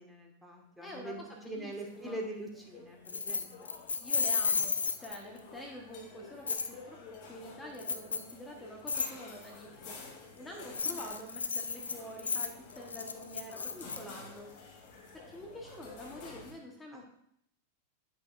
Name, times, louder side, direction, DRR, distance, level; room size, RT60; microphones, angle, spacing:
voice 1, 0.0-3.7 10.8-11.2 13.7-13.9 16.9-17.0, right 1 dB, 5° right, 0 dB, 1.4 m, -44 dB
voice 2, 0.8-2.2 4.0-14.5 15.1-17.0, equal, 10° left, 0 dB, 1.2 m, -47 dB
sound 1, 1.4-16.5, left 4 dB, 40° left, 2.2 m, -51 dB
Keys jangling, 3.1-5.4 6.5-6.7 7.8-8.3 8.9-9.1 10.6-14.0, left 5 dB, 75° left, 0.5 m, -33 dB
10.5 x 6.2 x 2.5 m, 0.72 s
figure-of-eight pair, 90°, 0 cm